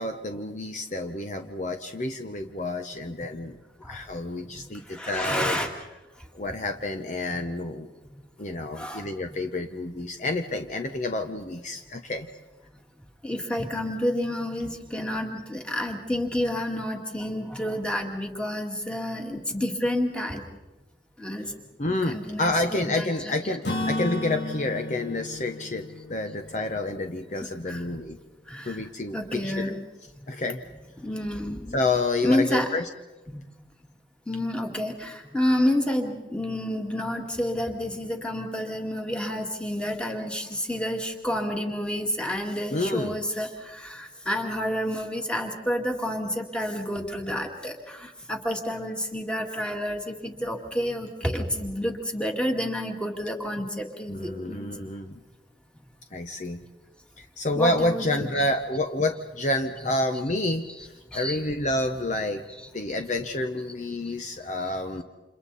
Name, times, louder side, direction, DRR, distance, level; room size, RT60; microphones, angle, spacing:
voice 1, 0.0-3.6 3.9-5.6 6.3-7.9 8.4-12.3 21.8-28.2 28.6-29.7 30.3-30.6 31.7-32.9 42.7-43.1 54.1-55.2 56.1-56.6 57.2-62.4 62.7-65.0, left 2 dB, 40° left, 6 dB, 1.0 m, -29 dB
voice 2, 4.9-5.7 8.7-9.1 13.2-20.4 21.2-21.5 22.1-23.4 27.4-28.0 28.5-28.8 29.1-29.8 31.0-31.8 32.2-32.7 33.3-33.4 34.3-54.7 57.6-58.3 61.1-61.4, left 1 dB, 5° left, 2 dB, 2.2 m, -29 dB
Acoustic guitar / Strum, 23.6-27.6, left 2 dB, 75° left, 3.1 m, -34 dB
30.0 x 28.0 x 4.2 m, 1.1 s
head